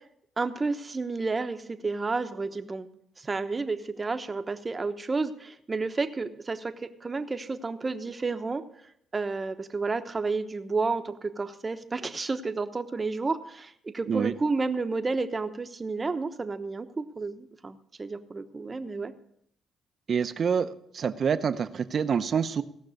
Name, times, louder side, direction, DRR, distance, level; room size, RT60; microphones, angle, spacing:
voice 1, 0.4-2.9 3.2-8.6 9.1-19.1, right 3 dB, 25° right, 8 dB, 0.9 m, -31 dB
voice 2, 20.1-22.6, right 6 dB, 50° right, 12 dB, 0.7 m, -27 dB
17.5 x 5.9 x 6.5 m, 0.73 s
cardioid pair, 90°, 0 cm